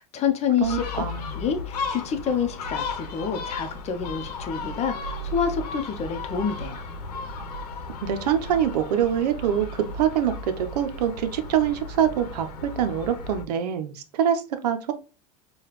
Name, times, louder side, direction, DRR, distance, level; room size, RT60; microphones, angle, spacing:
voice 1, 0.0-1.0 1.3-6.8, left 7 dB, 35° left, 0.7 m, -28 dB
Gull seagull, 0.6-13.4, left 3 dB, 85° left, 0.9 m, -35 dB
voice 2, 0.6-1.3 8.0-14.9, right 9 dB, 85° right, 0.6 m, -25 dB
4.8 x 2.4 x 3.0 m
hypercardioid pair, 100°, 20 cm